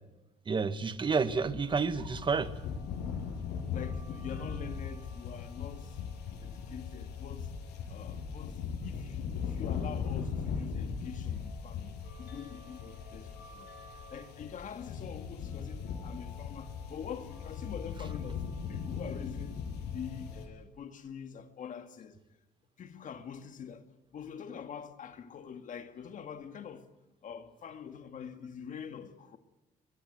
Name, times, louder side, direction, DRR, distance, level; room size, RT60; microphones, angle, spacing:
voice 1, 0.5-2.5, right 5 dB, 30° right, 1.7 m, -30 dB
sound 1, 0.9-20.5, left 6 dB, 85° left, 7.0 m, -39 dB
voice 2, 3.6-6.0 6.4-7.5 7.9-18.4 18.7-19.6 19.9-22.2 22.8-26.9 27.2-29.4, left 7 dB, 50° left, 2.0 m, -45 dB
22.5 x 22.0 x 8.0 m
cardioid pair, 110°, 17 cm